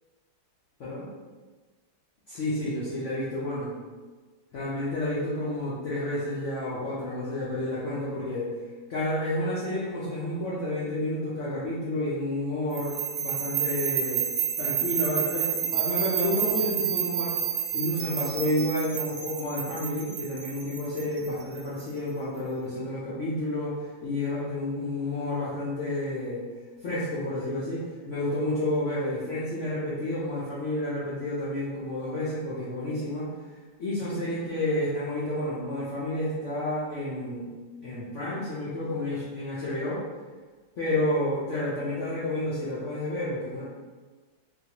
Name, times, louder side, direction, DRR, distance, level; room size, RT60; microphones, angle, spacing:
voice 1, 2.3-3.7 4.5-8.5 8.9-14.3 14.6-17.3 17.7-26.4 26.8-33.3 33.8-37.5 37.8-40.0 40.8-43.6, left 1 dB, 70° left, -9 dB, 0.7 m, -30 dB
sound 1, 12.7-21.8, right 9 dB, 90° right, 0.5 m, -30 dB
3.9 x 2.4 x 2.9 m, 1.4 s
omnidirectional pair, 2.1 m